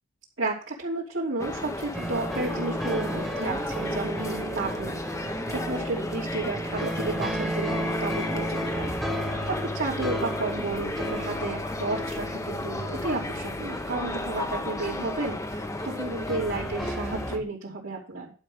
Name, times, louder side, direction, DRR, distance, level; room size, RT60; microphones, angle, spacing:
voice 1, 0.4-18.3, right 2 dB, 65° right, -7 dB, 3.3 m, -32 dB
sound 1, 1.4-17.4, left 1 dB, 15° left, 1.1 m, -34 dB
sound 2, 1.9-17.4, equal, ahead, 1.7 m, -34 dB
11.5 x 5.8 x 6.5 m, 0.39 s
head